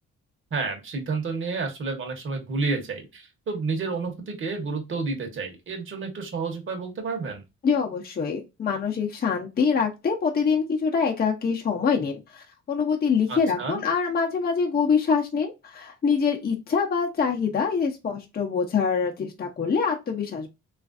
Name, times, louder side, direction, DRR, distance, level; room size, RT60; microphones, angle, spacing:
voice 1, 0.5-7.4 13.3-13.8, right 4 dB, 40° right, 4 dB, 1.0 m, -30 dB
voice 2, 7.6-20.5, left 6 dB, 30° left, 1 dB, 0.6 m, -25 dB
3.1 x 2.5 x 2.4 m, 0.24 s
cardioid pair, 90°, 30 cm